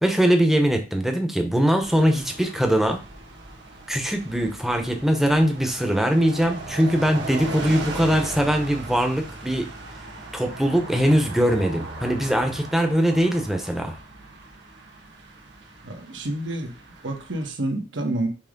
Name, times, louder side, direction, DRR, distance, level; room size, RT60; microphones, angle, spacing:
voice 1, 0.0-3.0 3.9-9.7 10.3-13.9, equal, ahead, 4 dB, 0.8 m, -21 dB
sound 1, 1.8-17.5, right 2 dB, 65° right, 1.5 m, -38 dB
voice 2, 15.8-16.7 17.0-18.3, right 1 dB, 80° right, 3 dB, 1.5 m, -28 dB
5.8 x 3.1 x 5.2 m, 0.34 s
head